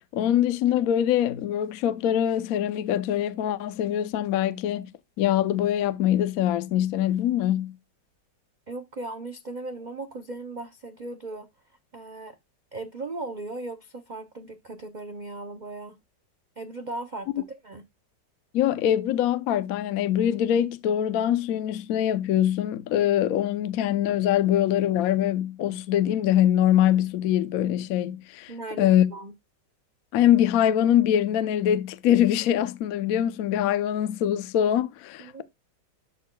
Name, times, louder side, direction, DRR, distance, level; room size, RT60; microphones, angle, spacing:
voice 1, 0.0-4.9 5.2-7.7 18.5-28.5 28.8-29.1 30.1-35.4, left 11 dB, 65° left, 1.0 m, -23 dB
voice 2, 8.7-11.5 11.9-12.4 12.7-16.0 16.6-17.8 28.5-29.3 35.2-35.4, right 2 dB, 85° right, 0.4 m, -37 dB
12.0 x 6.5 x 2.2 m
omnidirectional pair, 1.9 m